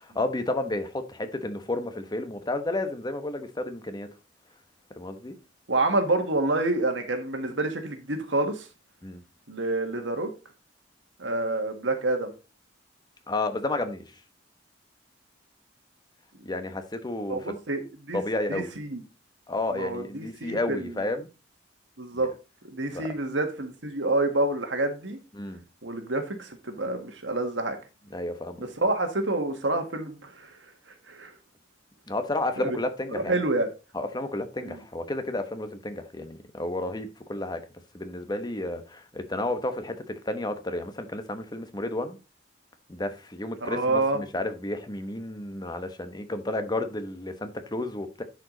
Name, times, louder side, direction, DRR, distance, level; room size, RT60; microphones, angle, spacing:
voice 1, 0.0-4.1 5.0-5.3 9.0-9.2 13.3-14.0 16.4-17.4 18.1-18.7 19.5-21.3 22.1-22.3 22.9-23.1 25.3-25.6 28.1-28.6 32.1-33.4 33.9-37.6 37.9-42.2 42.9-48.2, left 2 dB, 20° left, 1.0 m, -31 dB
voice 2, 5.7-8.7 9.5-10.3 11.2-12.3 17.3-18.2 18.5-19.0 19.7-20.9 22.0-22.3 22.7-25.2 25.8-27.8 28.6-30.6 31.1-31.3 32.6-32.8 33.1-33.7 34.6-34.8 43.6-44.2, right 2 dB, 80° right, 1.7 m, -28 dB
10.5 x 5.0 x 3.8 m
head